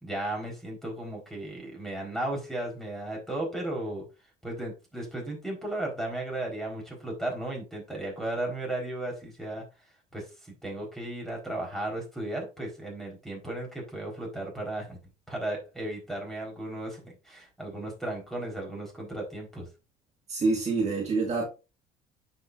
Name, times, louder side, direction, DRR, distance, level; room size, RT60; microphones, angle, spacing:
voice 1, 0.0-4.0 4.4-9.6 10.1-15.0 15.3-19.7, right 1 dB, ahead, 4.2 m, -35 dB
voice 2, 20.3-21.5, right 3 dB, 35° right, 2.0 m, -26 dB
9.2 x 6.1 x 2.5 m
cardioid pair, 105°, 18 cm